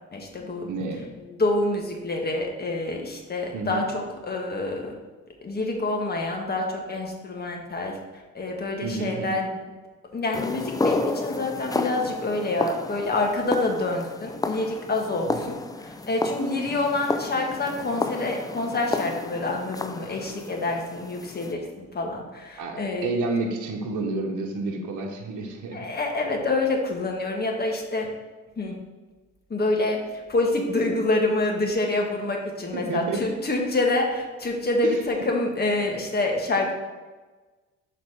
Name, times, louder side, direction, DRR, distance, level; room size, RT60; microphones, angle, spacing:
voice 1, 0.1-0.7 1.3-4.9 5.4-8.0 8.3-9.6 10.1-23.1 25.7-28.1 28.6-28.8 29.5-36.7, left 2 dB, 30° left, 1 dB, 1.4 m, -27 dB
voice 2, 0.7-1.0 3.5-3.8 8.8-9.4 22.6-25.9 32.7-33.3 34.8-35.0, right 3 dB, 80° right, 1 dB, 1.0 m, -30 dB
sound 1, 10.3-21.5, left 3 dB, 15° left, 0.4 m, -31 dB
6.2 x 4.1 x 5.3 m, 1.2 s
cardioid pair, 90°, 30 cm